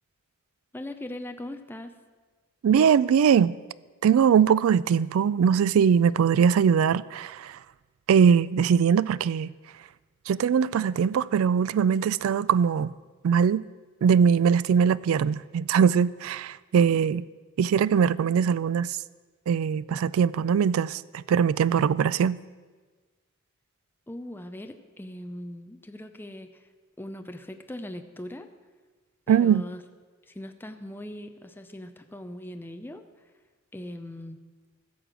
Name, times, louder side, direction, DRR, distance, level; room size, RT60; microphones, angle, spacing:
voice 1, 0.7-2.0 24.1-26.7 27.0-28.5 29.3-29.8 30.3-33.0 33.7-34.4, left 1 dB, 10° left, 0.5 m, -40 dB
voice 2, 2.6-3.5 4.0-7.6 8.1-9.5 10.3-12.9 13.2-13.6 14.0-17.2 17.6-18.9 19.5-22.4 29.3-29.6, right 7 dB, 70° right, 0.3 m, -21 dB
15.5 x 6.7 x 6.1 m
head